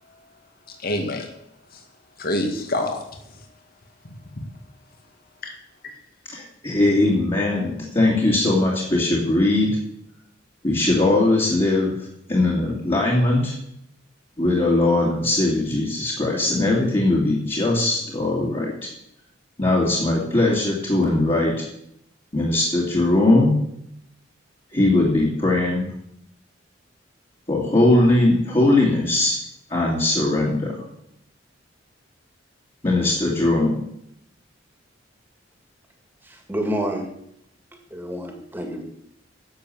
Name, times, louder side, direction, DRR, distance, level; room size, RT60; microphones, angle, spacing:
voice 1, 0.7-1.3 1.7-1.8 2.2-3.4 5.4-5.6, left 1 dB, 50° left, 4 dB, 2.0 m, -27 dB
voice 2, 6.3-9.8 10.6-11.9 12.3-13.6 14.4-18.7 19.6-21.5 22.3-23.6 24.7-25.9 27.5-29.4 29.7-30.8 32.8-33.8, left 2 dB, 30° left, -5 dB, 2.8 m, -20 dB
voice 3, 36.2-37.1 37.9-38.8, equal, 10° right, 3 dB, 2.2 m, -28 dB
11.5 x 7.3 x 8.0 m, 0.76 s
head